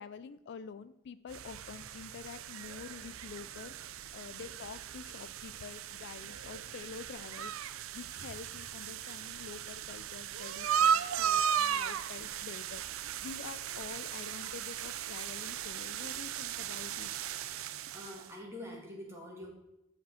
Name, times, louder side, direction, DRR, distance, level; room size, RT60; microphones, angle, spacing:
voice 1, 0.0-17.1, left 6 dB, 55° left, 14 dB, 0.3 m, -48 dB
sound 1, 1.3-18.3, right 8 dB, 80° right, 0.5 m, -36 dB
voice 2, 17.9-19.5, left 1 dB, 15° right, -2 dB, 2.3 m, -45 dB
12.5 x 5.1 x 4.2 m, 0.92 s
head